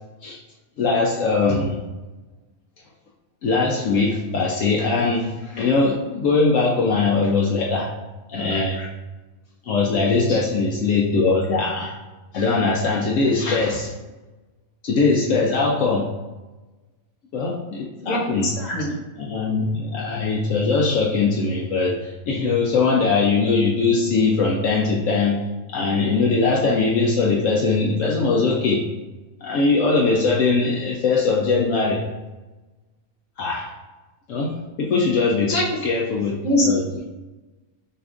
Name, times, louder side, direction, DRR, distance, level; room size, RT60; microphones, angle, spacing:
voice 1, 0.8-1.8 3.4-7.9 8.3-8.9 9.6-11.9 12.3-13.9 14.8-16.1 17.3-18.5 19.2-28.8 29.4-32.0 33.4-33.7 34.3-35.5 35.8-37.0, left 4 dB, 70° left, -3 dB, 0.9 m, -21 dB
voice 2, 18.0-18.9 35.5-35.6 36.4-36.7, left 1 dB, 35° left, -4 dB, 1.0 m, -22 dB
6.5 x 2.5 x 2.5 m, 1.2 s
omnidirectional pair, 1.5 m